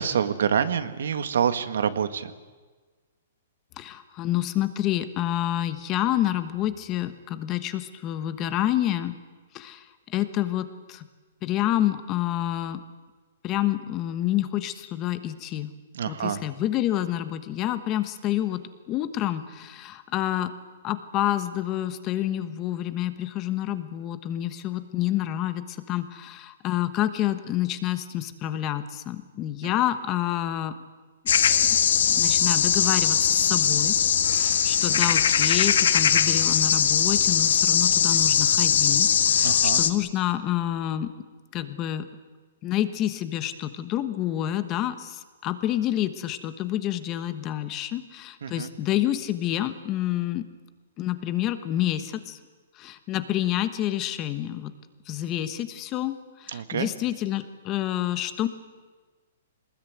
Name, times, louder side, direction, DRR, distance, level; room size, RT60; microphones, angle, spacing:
voice 1, 0.0-2.3 15.9-16.4 39.4-39.8 48.4-48.7 56.5-56.9, right 7 dB, 75° right, 11 dB, 1.8 m, -26 dB
voice 2, 3.8-9.1 9.5-11.1 11.4-12.8 13.4-15.7 16.1-18.6 18.9-20.5 20.8-30.7 31.7-31.8 32.1-33.9 34.3-41.1 41.5-42.1 42.6-50.4 51.0-52.4 52.8-54.7 55.1-58.5, left 13 dB, 25° left, 12 dB, 1.2 m, -28 dB
sound 1, 31.3-39.9, left 8 dB, 70° left, 1.6 m, -21 dB
22.5 x 20.0 x 9.4 m, 1.4 s
hypercardioid pair, 165°, 0 cm